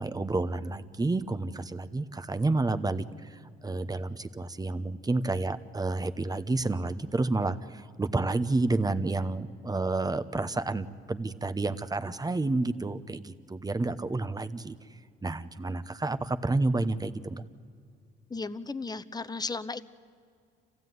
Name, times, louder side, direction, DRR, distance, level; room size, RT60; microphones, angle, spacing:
voice 1, 0.0-17.4, right 2 dB, 20° right, 12 dB, 1.0 m, -30 dB
voice 2, 18.3-19.8, left 3 dB, 20° left, 13 dB, 0.9 m, -35 dB
27.0 x 16.0 x 9.5 m, 2.2 s
cardioid pair, 90°, 20 cm